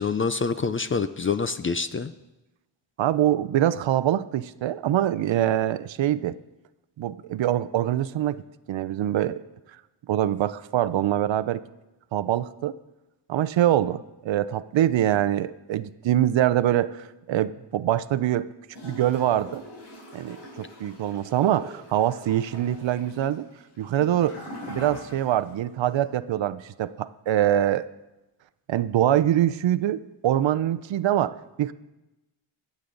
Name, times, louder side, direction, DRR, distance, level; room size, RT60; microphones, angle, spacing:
voice 1, 0.0-2.1, left 5 dB, 30° left, 12 dB, 0.4 m, -26 dB
voice 2, 3.0-6.4 7.0-8.4 8.7-9.4 10.1-11.6 12.1-12.7 13.3-18.5 18.8-19.6 20.1-23.5 23.8-27.9 28.7-31.7, right 12 dB, 70° right, 14 dB, 0.6 m, -24 dB
Gurgling / Toilet flush, 18.7-25.6 25.9-26.0, left 1 dB, 55° left, 6.0 m, -43 dB
24.5 x 8.4 x 3.9 m, 1.0 s
wide cardioid pair, 150°, 47 cm